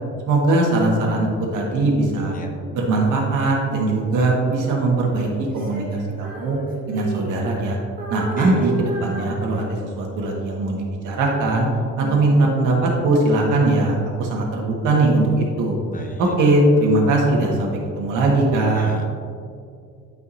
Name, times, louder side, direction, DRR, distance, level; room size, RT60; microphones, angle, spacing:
voice 1, 0.3-2.3 2.7-5.9 6.2-6.6 6.9-7.8 8.1-11.7 12.1-15.8 16.2-17.7 18.0-18.9, right 2 dB, 80° right, -1 dB, 1.8 m, -20 dB
Female singing, 5.4-7.7 8.0-10.0, right 2 dB, 30° right, 1.7 m, -32 dB
voice 2, 8.4-8.7 12.0-12.4 15.9-16.3 18.7-19.1, left 2 dB, 25° left, 2 dB, 0.8 m, -33 dB
12.0 x 5.2 x 2.8 m, 2.3 s
cardioid pair, 150°, 31 cm